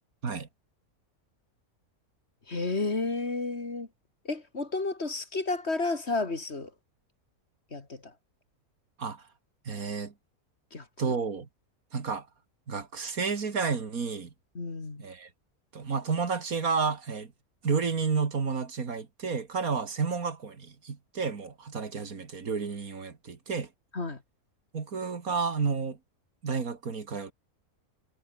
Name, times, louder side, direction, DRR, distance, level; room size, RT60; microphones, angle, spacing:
voice 1, 2.5-3.9 4.2-6.7 7.7-8.1 10.7-11.1 14.5-15.0 23.9-24.2, left 3 dB, 45° left, 2.9 m, -32 dB
voice 2, 9.7-10.1 11.0-11.5 11.9-12.3 12.7-14.3 15.0-15.3 15.7-17.3 17.6-23.7 24.7-26.0 26.4-27.3, right 5 dB, 70° right, 2.5 m, -31 dB
omnidirectional pair, 1.6 m